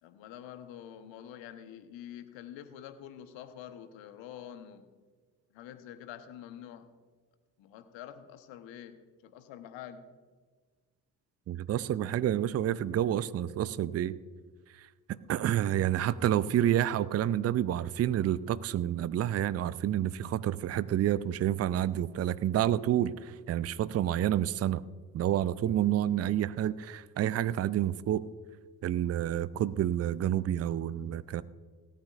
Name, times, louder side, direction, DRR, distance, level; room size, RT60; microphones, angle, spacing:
voice 1, 0.0-4.8 5.5-6.9 7.6-10.0, left 10 dB, 65° left, 10 dB, 1.1 m, -47 dB
voice 2, 11.5-14.2 15.1-24.8 25.1-28.2 28.8-31.4, right 11 dB, 30° right, 18 dB, 0.5 m, -29 dB
17.5 x 13.5 x 2.5 m, 1.5 s
hypercardioid pair, 45°, 48 cm